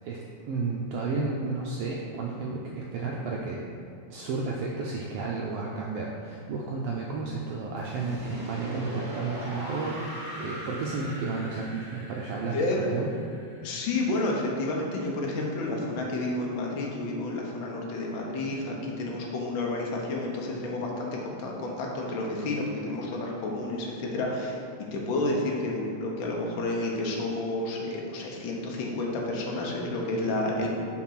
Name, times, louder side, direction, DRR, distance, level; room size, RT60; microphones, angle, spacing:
voice 1, 0.0-3.6 4.1-13.1, right 4 dB, 85° right, -2 dB, 1.3 m, -32 dB
sound 1, 7.8-14.7, equal, 50° right, 0.8 m, -41 dB
voice 2, 13.6-24.6 24.9-30.7, left 2 dB, 75° left, -1 dB, 1.1 m, -30 dB
6.1 x 3.8 x 5.8 m, 2.4 s
omnidirectional pair, 3.3 m